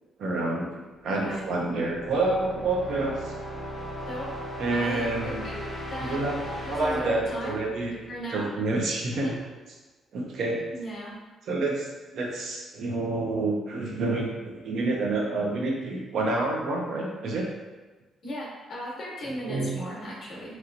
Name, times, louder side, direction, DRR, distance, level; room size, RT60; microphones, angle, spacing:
voice 1, 0.2-3.3 4.6-5.4 6.0-6.4 6.7-7.9 8.3-9.4 10.1-10.6 11.5-17.4 19.2-19.7, right 2 dB, 55° right, -1 dB, 0.6 m, -28 dB
sound 1, 1.0-8.7, equal, 15° left, 0.5 m, -38 dB
voice 2, 1.1-1.4 4.1-4.3 4.7-6.2 6.6-7.6 8.1-8.5 9.1-9.4 10.7-11.1 18.2-20.5, equal, 40° left, -4 dB, 1.0 m, -36 dB
sound 2, 6.5-8.1 8.4-8.6, equal, 65° left, 0.7 m, -48 dB
3.0 x 2.9 x 2.5 m, 1.2 s
cardioid pair, 160°, 0 cm